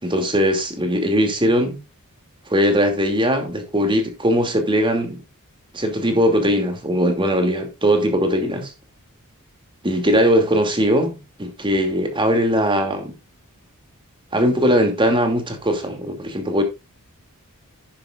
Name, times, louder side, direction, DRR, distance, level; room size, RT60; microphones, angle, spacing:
voice 1, 0.0-1.8 2.5-5.2 5.7-8.7 9.8-13.1 14.3-16.6, equal, 25° right, 2.6 m, -20 dB
10.5 x 10.5 x 2.5 m
head